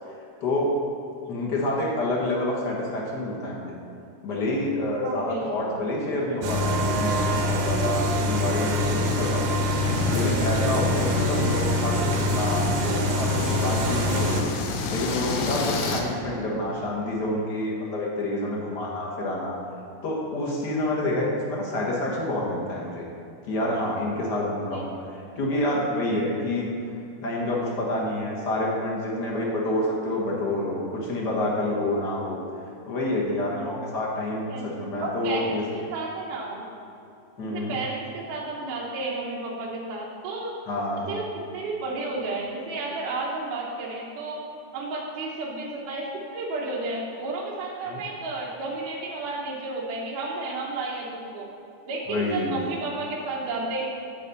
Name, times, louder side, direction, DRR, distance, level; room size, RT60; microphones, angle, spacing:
voice 1, 0.4-0.7 1.3-3.7 4.2-9.6 10.1-14.5 14.9-19.6 20.0-23.0 23.5-26.7 27.2-32.4 32.9-35.6 37.4-37.8 40.7-41.1 47.8-48.0 52.1-52.6, left 1 dB, 50° left, -3 dB, 1.3 m, -28 dB
voice 2, 5.0-5.8 24.7-24.8 34.5-34.7 35.0-36.7 37.4-40.5 41.1-44.4 44.7-51.5 51.9-53.9, right 3 dB, 85° right, -4 dB, 2.7 m, -32 dB
sound 1, 6.4-14.4, left 1 dB, 70° right, 2.0 m, -25 dB
sound 2, 9.8-16.0, left 4 dB, 80° left, 2.3 m, -30 dB
10.0 x 4.2 x 7.0 m, 2.6 s
omnidirectional pair, 3.6 m